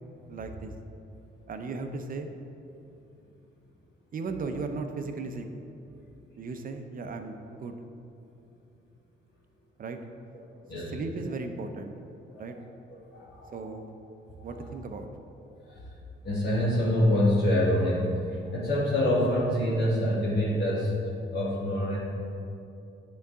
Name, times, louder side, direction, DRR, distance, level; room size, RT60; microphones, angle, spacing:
voice 1, 0.3-0.7 1.5-2.3 4.1-5.5 6.4-7.8 9.8-10.0 10.7-11.9 12.4-12.6 13.5-13.9 14.4-15.1, right 4 dB, 45° right, 6 dB, 0.6 m, -36 dB
voice 2, 10.4-11.0 12.3-12.4 12.9-13.7 14.3-14.7 15.4-15.9 16.2-20.9 21.3-21.9, left 1 dB, 55° left, -9 dB, 1.6 m, -27 dB
9.4 x 4.0 x 3.6 m, 2.8 s
cardioid pair, 90°, 20 cm